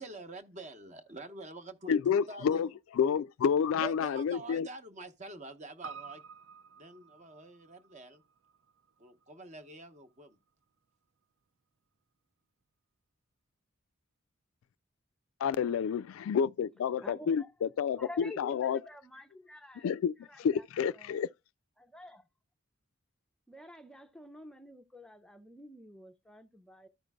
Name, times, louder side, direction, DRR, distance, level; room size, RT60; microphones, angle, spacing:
voice 1, 0.0-2.7 3.8-6.2 6.7-8.2 9.0-10.4, right 3 dB, 35° right, 0.9 m, -46 dB
voice 2, 1.9-2.7 3.0-4.7 15.4-18.8 19.8-20.1 20.4-21.3, left 7 dB, 75° left, 0.3 m, -29 dB
Piano, 5.8-10.3 10.6-10.7, right 6 dB, 70° right, 0.5 m, -51 dB
voice 3, 17.0-17.5 18.0-19.9 20.2-20.7 20.9-21.2 21.8-22.3 23.5-26.9, left 1 dB, 5° left, 0.4 m, -49 dB
13.5 x 5.1 x 2.3 m
head